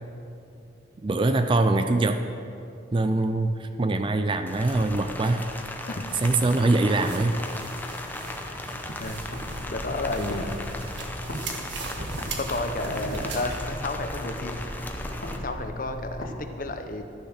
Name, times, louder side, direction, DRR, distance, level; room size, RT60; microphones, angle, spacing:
voice 1, 1.0-2.2 2.9-5.5 6.2-7.4, right 2 dB, 25° right, 8 dB, 0.4 m, -23 dB
Rain, 4.5-15.4, left 1 dB, 10° left, 0.7 m, -38 dB
sound 1, 6.1-13.7, right 2 dB, 70° right, 1.4 m, -38 dB
sound 2, 9.0-11.5 11.7-16.4, equal, 85° left, 2.0 m, -37 dB
voice 2, 9.7-10.5 12.4-14.7 15.3-17.0, left 2 dB, 45° left, 6 dB, 0.8 m, -32 dB
12.5 x 6.7 x 6.5 m, 2.6 s
head